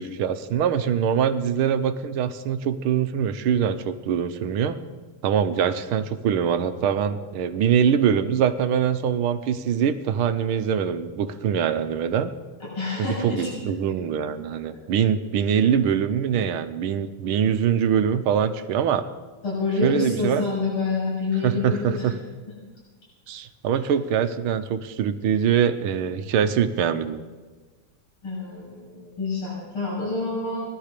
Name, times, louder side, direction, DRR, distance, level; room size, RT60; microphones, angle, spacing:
voice 1, 0.0-4.8 5.2-12.3 13.0-19.1 19.8-20.5 21.4-22.1 23.3-27.2, right 8 dB, 80° right, 11 dB, 1.8 m, -23 dB
voice 2, 12.6-13.5 19.4-22.1 28.2-30.6, left 4 dB, 75° left, -7 dB, 7.9 m, -27 dB
18.0 x 12.0 x 6.7 m, 1.3 s
omnidirectional pair, 2.3 m